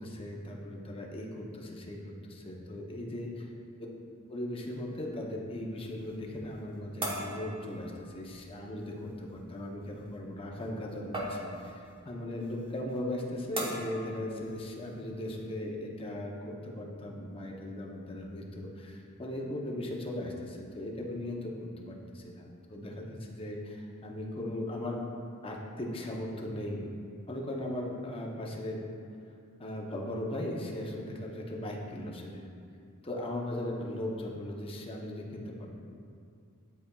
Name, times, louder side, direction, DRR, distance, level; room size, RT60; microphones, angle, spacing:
voice 1, 0.0-3.5 4.3-25.0 25.4-26.9 27.3-28.9 29.6-32.4 33.0-35.8, left 1 dB, 25° left, -1 dB, 0.7 m, -38 dB
sound 1, 4.7-15.5, right 1 dB, 25° right, 0.9 m, -43 dB
10.0 x 4.1 x 2.3 m, 2.3 s
head